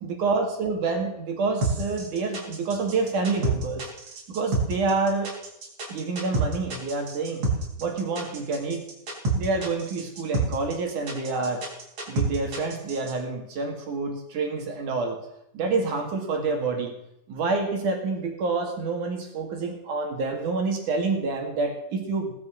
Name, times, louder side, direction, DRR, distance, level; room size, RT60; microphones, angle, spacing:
voice 1, 0.0-3.9 4.3-5.3 5.9-7.5 7.8-8.8 9.4-11.6 12.1-15.2 15.5-17.0 17.3-22.3, right 3 dB, 75° right, 3 dB, 3.9 m, -28 dB
sound 1, 1.6-13.1, right 2 dB, 60° right, 5.5 m, -28 dB
18.0 x 12.5 x 6.4 m, 0.80 s
omnidirectional pair, 3.6 m